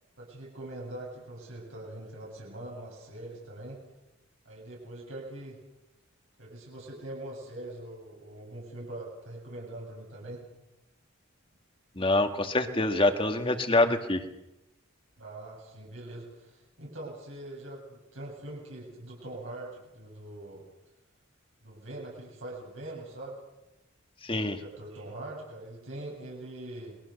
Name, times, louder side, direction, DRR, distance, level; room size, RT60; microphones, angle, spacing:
voice 1, 0.2-3.8 4.4-5.6 6.4-10.4 15.2-20.6 21.6-23.4 24.3-27.0, right 1 dB, 75° right, -3 dB, 7.8 m, -42 dB
voice 2, 12.0-14.2 24.2-24.6, left 2 dB, 25° left, 6 dB, 1.9 m, -25 dB
29.0 x 22.0 x 6.6 m, 0.94 s
head